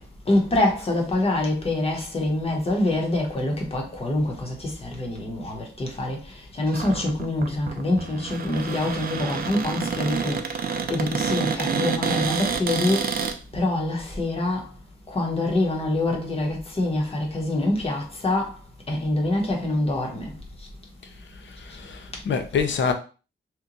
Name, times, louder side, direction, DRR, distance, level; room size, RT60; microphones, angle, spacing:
voice 1, 0.3-6.2 6.6-10.4 10.9-13.1 13.5-14.6 15.1-18.5 18.9-20.3, left 1 dB, 30° left, 0.9 m, -25 dB
Cupboard open or close, 6.7-13.4, right 6 dB, 50° right, 0.4 m, -28 dB
voice 2, 21.4-22.9, left 6 dB, 75° left, 0.6 m, -26 dB
2.9 x 2.2 x 3.8 m
wide cardioid pair, 150°, 19 cm